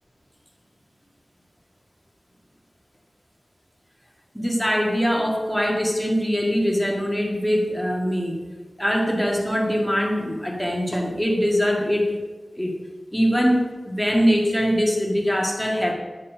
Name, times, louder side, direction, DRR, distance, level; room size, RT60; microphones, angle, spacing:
voice 1, 4.3-8.4 8.8-12.2 12.6-12.8 13.1-15.9, equal, 5° left, -1 dB, 1.8 m, -22 dB
10.5 x 4.2 x 6.5 m, 1.3 s
wide cardioid pair, 75°, 0 cm